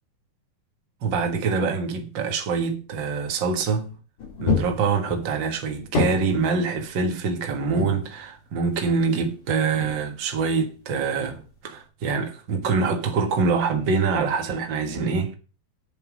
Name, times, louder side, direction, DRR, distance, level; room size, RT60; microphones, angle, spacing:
voice 1, 1.0-3.9 4.4-15.3, right 4 dB, 60° right, 1.2 m, -25 dB
sound 1, 4.2-5.5 5.7-7.1 7.8-8.2 8.8-10.1 10.7-10.8 11.3-11.8, left 4 dB, 50° left, 4.8 m, -29 dB
9.6 x 7.2 x 6.2 m
omnidirectional pair, 4.6 m